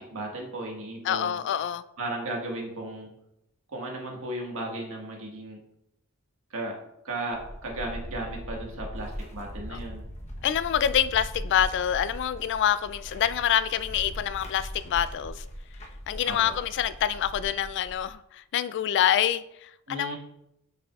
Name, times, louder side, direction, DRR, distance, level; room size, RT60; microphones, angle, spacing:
voice 1, 0.0-1.4 2.0-3.1 3.7-5.6 6.5-6.8 7.0-10.1 16.2-16.5 19.9-20.2, right 1 dB, 65° right, 1.6 m, -35 dB
voice 2, 1.0-1.8 9.7-9.8 10.4-15.4 16.1-20.2, left 10 dB, 55° left, 0.3 m, -26 dB
sound 1, 7.3-18.1, equal, 30° left, 1.0 m, -40 dB
8.3 x 6.0 x 2.4 m
head